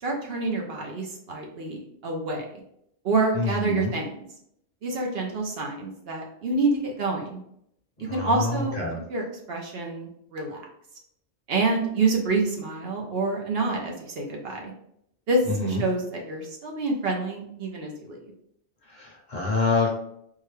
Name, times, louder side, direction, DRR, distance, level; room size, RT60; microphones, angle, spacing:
voice 1, 0.0-2.4 3.0-4.1 4.8-7.4 8.1-8.8 9.1-10.6 11.5-14.7 15.3-15.4 15.7-18.2, right 3 dB, 65° right, 0 dB, 0.8 m, -27 dB
voice 2, 3.3-3.9 8.1-9.0 15.5-15.8 18.9-19.9, left 3 dB, 45° left, -2 dB, 0.8 m, -26 dB
3.7 x 2.1 x 3.1 m, 0.74 s
omnidirectional pair, 1.2 m